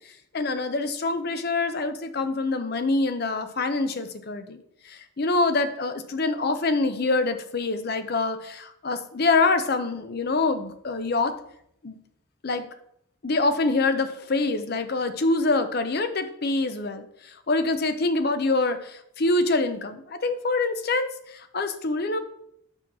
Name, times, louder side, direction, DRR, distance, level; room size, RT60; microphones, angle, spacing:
voice 1, 0.3-11.4 11.8-12.0 12.4-12.7 13.2-22.2, left 3 dB, 45° left, 9 dB, 0.6 m, -25 dB
6.2 x 4.3 x 6.1 m, 0.74 s
head